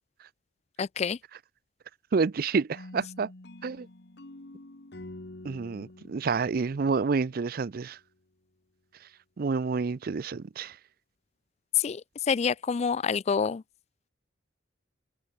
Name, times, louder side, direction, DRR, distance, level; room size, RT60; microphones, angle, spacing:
voice 1, 0.8-1.2 11.8-12.0 12.3-13.6, left 6 dB, 35° left, 0.3 m, -27 dB
voice 2, 2.1-3.3 3.6-3.9 5.4-8.0 9.4-10.7, right 4 dB, 50° right, 0.4 m, -28 dB
sound 1, 2.7-7.6, left 1 dB, 60° left, 1.5 m, -47 dB
head